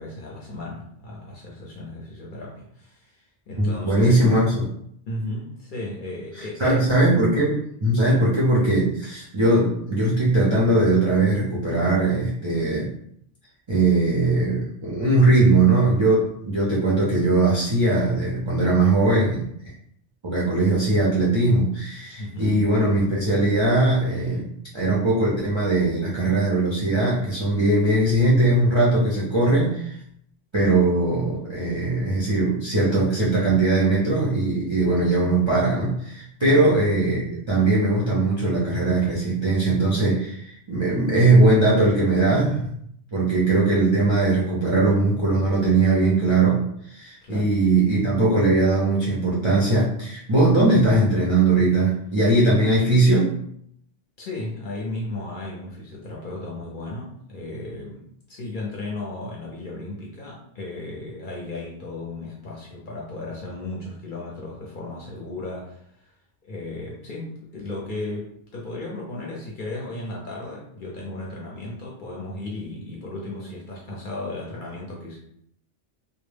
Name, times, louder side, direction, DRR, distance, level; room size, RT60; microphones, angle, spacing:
voice 1, 0.0-4.2 5.1-6.8 8.0-8.3 22.2-22.6 36.4-36.7 47.2-47.5 54.2-66.1 66.4-75.2, left 2 dB, 55° left, -3 dB, 0.6 m, -35 dB
voice 2, 3.6-4.6 6.4-12.9 13.7-19.5 20.2-24.4 24.7-30.0 30.5-42.7 43.1-53.3, right 2 dB, 45° right, -7 dB, 0.3 m, -20 dB
2.1 x 2.0 x 3.2 m, 0.70 s
omnidirectional pair, 1.2 m